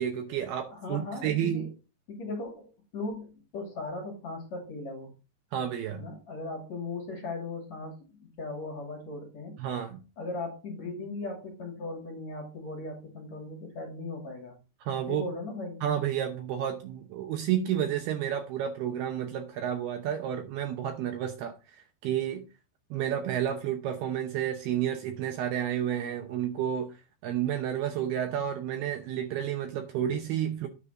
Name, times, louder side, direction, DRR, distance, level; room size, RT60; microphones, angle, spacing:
voice 1, 0.0-1.7 5.5-6.1 9.6-10.0 14.8-15.3 15.8-22.5 22.9-30.7, right 10 dB, 75° right, 2.5 m, -31 dB
voice 2, 0.7-1.7 2.1-5.1 6.0-9.6 10.2-14.6 15.1-15.8, left 2 dB, 45° left, 3.2 m, -38 dB
10.0 x 3.9 x 6.3 m
omnidirectional pair, 5.2 m